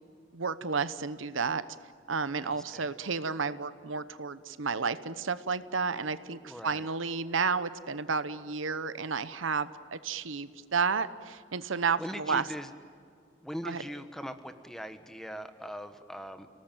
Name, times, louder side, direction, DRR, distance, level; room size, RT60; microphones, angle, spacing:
voice 1, 0.3-1.6 2.1-12.4 13.6-13.8, right 5 dB, 85° right, 14 dB, 1.0 m, -31 dB
voice 2, 2.4-2.9 6.4-6.9 11.9-12.7 13.4-16.5, equal, ahead, 9 dB, 1.2 m, -41 dB
30.0 x 18.5 x 9.1 m, 2.2 s
head